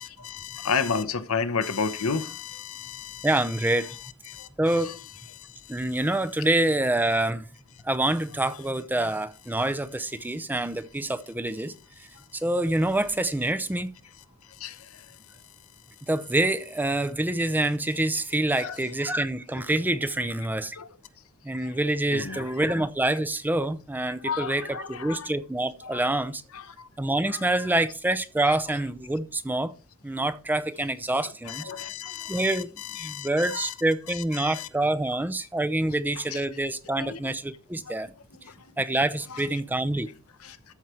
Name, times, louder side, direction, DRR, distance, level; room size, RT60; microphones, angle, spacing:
voice 1, 0.0-3.3 4.3-4.5 4.9-5.0 5.3-5.5 14.6-14.8 18.6-18.8 20.8-20.9 22.1-22.5 24.2-25.3 25.8-26.0 26.5-26.9 28.5-28.6 31.5-32.6 32.9-33.7 34.4-34.7 36.3-36.4 37.0-37.2 37.9-38.0 38.5-38.6 39.3-39.4 40.4-40.6, left 5 dB, 80° left, 0.9 m, -32 dB
voice 2, 3.2-4.0 4.6-5.0 5.7-7.5 7.8-11.7 12.3-13.9 16.1-20.8 21.4-26.4 27.0-29.7 30.0-31.7 32.3-32.7 33.0-38.1 38.8-40.1, right 1 dB, 10° right, 0.5 m, -26 dB
13.0 x 4.9 x 4.4 m
head